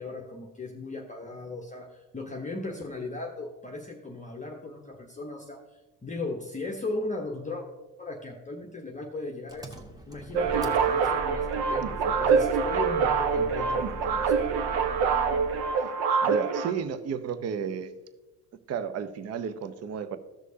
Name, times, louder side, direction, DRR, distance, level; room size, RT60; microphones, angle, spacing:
voice 1, 0.0-7.6 8.0-9.8 10.1-14.3, left 2 dB, 15° left, 2 dB, 0.9 m, -37 dB
Engine, 9.5-15.8, right 2 dB, 10° right, 1.2 m, -40 dB
sound 1, 10.3-16.7, right 5 dB, 60° right, 1.0 m, -25 dB
voice 2, 16.2-17.9 18.7-20.2, right 7 dB, 35° right, 11 dB, 0.7 m, -33 dB
14.5 x 6.3 x 2.8 m, 1.1 s
hypercardioid pair, 60°, 46 cm